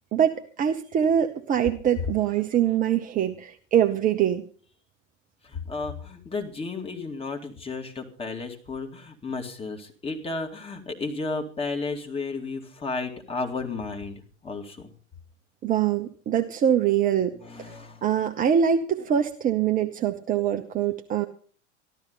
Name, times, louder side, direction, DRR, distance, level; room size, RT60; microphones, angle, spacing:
voice 1, 0.1-4.4 15.6-17.7 18.0-21.3, right 9 dB, 20° right, 6 dB, 0.8 m, -24 dB
voice 2, 5.4-14.9 17.3-18.0, left 3 dB, 15° left, 3 dB, 2.3 m, -33 dB
14.0 x 12.5 x 5.5 m, 0.43 s
figure-of-eight pair, 85°, 37 cm